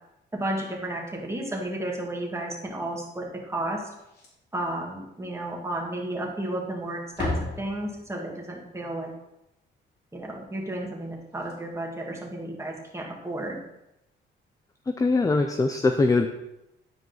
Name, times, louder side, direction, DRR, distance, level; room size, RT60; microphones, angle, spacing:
voice 1, 0.3-3.8 4.5-9.1 10.1-13.6, right 1 dB, 15° right, -1 dB, 2.1 m, -32 dB
Slam, 4.0-4.6 4.9-5.0 5.5-5.6 6.4-6.7 7.0-8.3 11.0-11.1 11.3-11.5 13.0-13.2, left 2 dB, 55° left, 2.7 m, -35 dB
voice 2, 14.9-16.3, left 3 dB, 15° left, 7 dB, 0.5 m, -22 dB
10.5 x 4.7 x 4.0 m, 0.88 s
cardioid pair, 90°, 20 cm